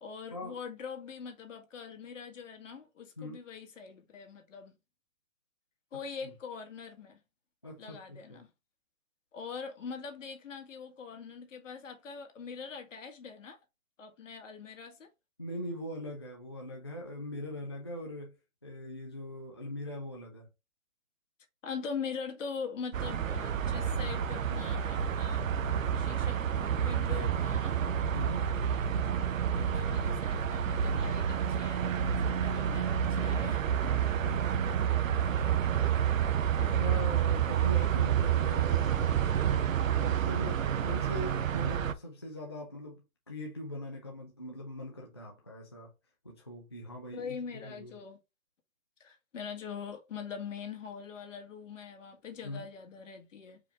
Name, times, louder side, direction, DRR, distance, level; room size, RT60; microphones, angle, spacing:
voice 1, 0.0-4.8 5.9-7.2 7.8-8.5 9.3-13.6 14.0-15.1 21.6-25.5 26.0-27.8 29.5-33.7 36.6-36.8 47.1-48.2 49.0-53.6, left 6 dB, 65° left, 1.7 m, -43 dB
voice 2, 7.6-8.4 15.4-18.4 18.6-20.5 28.1-28.5 34.2-35.1 36.6-45.9 46.2-47.9 52.4-52.6, equal, 20° left, 0.4 m, -41 dB
sound 1, 22.9-41.9, right 8 dB, 70° right, 0.8 m, -29 dB
4.8 x 3.3 x 3.3 m
hypercardioid pair, 155°, 41 cm